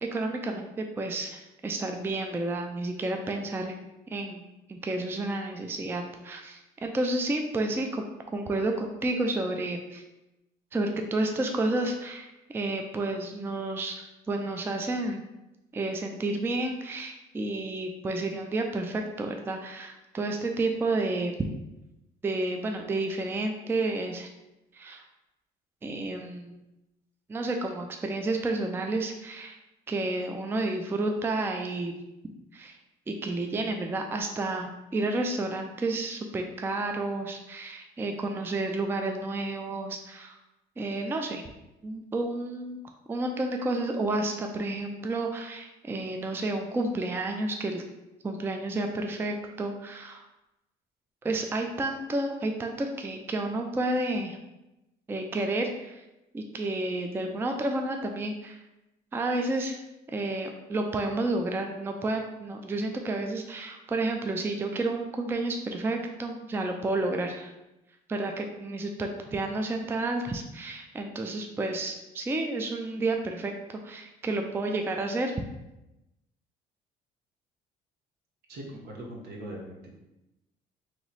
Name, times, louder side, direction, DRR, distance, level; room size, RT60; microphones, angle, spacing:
voice 1, 0.0-3.7 4.1-8.0 8.3-10.0 10.7-15.2 15.7-21.4 22.2-24.3 24.7-25.0 25.8-26.6 27.3-29.6 29.9-31.9 32.5-32.8 33.1-40.4 40.8-41.4 41.8-42.8 43.1-47.8 48.2-50.2 51.2-54.4 55.1-56.0 56.3-58.6 59.1-59.8 60.1-67.5 68.1-75.3, right 2 dB, 15° right, 3 dB, 0.3 m, -31 dB
voice 2, 78.5-79.9, right 1 dB, 70° right, 0 dB, 1.1 m, -41 dB
3.0 x 3.0 x 3.9 m, 0.96 s
cardioid pair, 110°, 17 cm